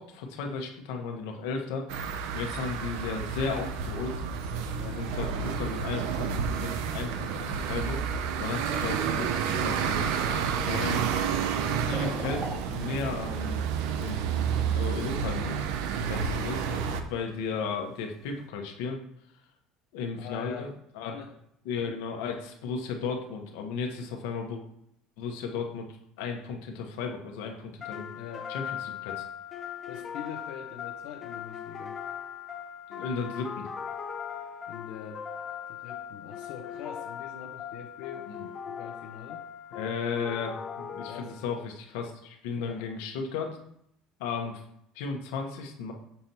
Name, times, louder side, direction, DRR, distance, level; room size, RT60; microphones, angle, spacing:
voice 1, 0.0-1.9 2.3-4.1 4.8-8.0 8.4-10.2 10.6-11.1 11.9-13.7 14.0-14.2 14.7-15.5 16.1-16.8 17.1-19.0 19.9-21.2 21.6-24.6 25.2-25.9 26.2-28.1 28.5-29.2 32.9-33.7 38.3-38.5 39.7-43.6 44.2-44.6 44.9-45.9, left 5 dB, 90° left, 3 dB, 1.1 m, -35 dB
sound 1, 1.9-17.0, right 7 dB, 70° right, 0.6 m, -30 dB
sound 2, 6.8-18.5, right 1 dB, 20° right, 1.2 m, -47 dB
voice 2, 20.1-20.7 21.1-21.3 28.1-28.5 29.9-32.0 34.7-35.3 35.7-38.4 38.7-39.4 41.0-41.4 42.5-42.9, left 8 dB, 65° left, 0 dB, 0.8 m, -43 dB
sound 3, 27.8-41.7, left 8 dB, 20° left, 0.6 m, -39 dB
6.7 x 3.0 x 5.4 m, 0.73 s
cardioid pair, 175°, 0 cm